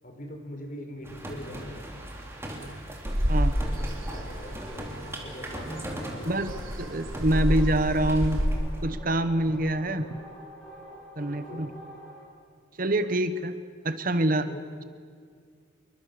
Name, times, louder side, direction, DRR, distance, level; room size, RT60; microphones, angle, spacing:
voice 1, 0.0-1.9 4.1-4.5 5.0-6.6 11.3-11.7 14.5-14.6, left 1 dB, 40° left, 5 dB, 4.3 m, -42 dB
sound 1, 1.0-8.8, right 1 dB, 10° right, 3.5 m, -40 dB
sound 2, 3.0-8.5, equal, 85° right, 3.8 m, -29 dB
sound 3, 3.5-12.2, equal, 5° left, 6.2 m, -48 dB
voice 2, 6.2-8.5 8.8-10.1 11.2-11.7 12.8-13.5 13.8-14.5, right 1 dB, 45° right, 11 dB, 1.1 m, -26 dB
27.5 x 23.5 x 6.9 m, 2.1 s
head